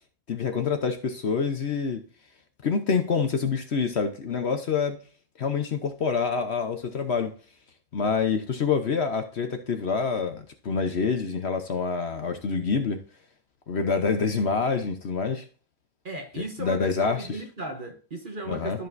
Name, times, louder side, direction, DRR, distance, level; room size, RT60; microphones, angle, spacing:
voice 1, 0.3-2.0 2.6-5.0 5.4-7.3 7.9-13.0 13.7-15.5 16.4-17.4 18.5-18.8, left 5 dB, 50° left, 1.0 m, -26 dB
voice 2, 16.0-18.9, right 2 dB, 40° right, 1.0 m, -36 dB
13.0 x 5.2 x 2.6 m
omnidirectional pair, 1.6 m